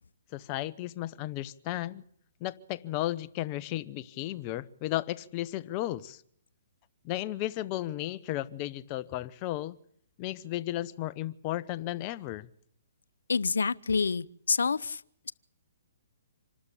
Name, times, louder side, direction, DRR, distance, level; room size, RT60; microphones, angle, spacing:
voice 1, 0.3-2.0 2.4-6.2 7.0-9.8 10.2-12.5, left 15 dB, 30° left, 0.9 m, -34 dB
voice 2, 13.3-15.0, left 5 dB, 85° left, 0.7 m, -27 dB
27.0 x 12.5 x 8.4 m
hypercardioid pair, 145°, 0 cm